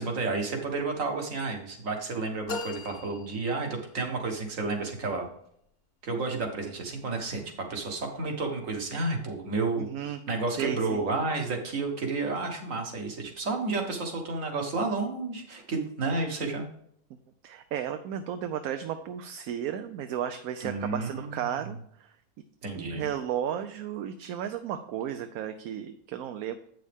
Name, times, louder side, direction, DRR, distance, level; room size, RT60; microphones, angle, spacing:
voice 1, 0.0-5.3 6.0-7.4 7.7-16.7 20.6-21.5 22.6-23.1, right 3 dB, 60° right, 3 dB, 1.8 m, -31 dB
sound 1, 2.5-4.1, left 4 dB, 45° left, 1.0 m, -39 dB
voice 2, 9.8-10.2 10.6-11.0 17.4-22.1 22.7-26.6, right 9 dB, 75° right, 8 dB, 1.0 m, -34 dB
8.3 x 6.4 x 3.5 m, 0.68 s
omnidirectional pair, 1.6 m